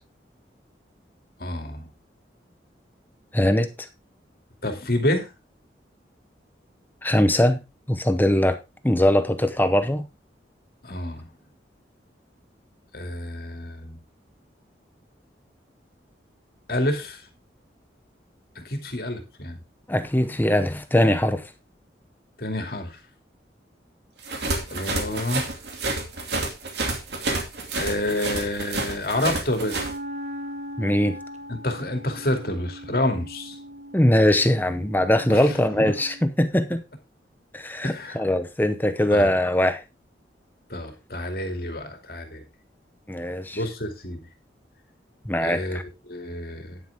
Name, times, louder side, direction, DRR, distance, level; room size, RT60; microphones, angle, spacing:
voice 1, 1.4-1.9 4.6-5.3 10.8-11.3 12.9-14.0 16.7-17.2 18.6-19.6 22.4-23.0 24.7-25.5 27.7-29.9 31.5-33.6 35.3-35.9 37.8-38.2 39.1-39.3 40.7-42.4 43.5-44.2 45.4-46.8, left 1 dB, 55° left, 2.5 m, -28 dB
voice 2, 3.3-3.9 7.0-7.6 7.9-8.6 8.8-10.1 19.9-21.4 30.8-31.1 33.9-36.8 37.5-39.8 43.1-43.6 45.3-45.8, left 1 dB, 10° left, 0.8 m, -21 dB
sound 1, 24.2-29.9, right 2 dB, 65° right, 2.5 m, -29 dB
Wind instrument woodwind instrument, 29.6-36.3, equal, 40° right, 1.1 m, -39 dB
10.0 x 9.4 x 3.5 m
head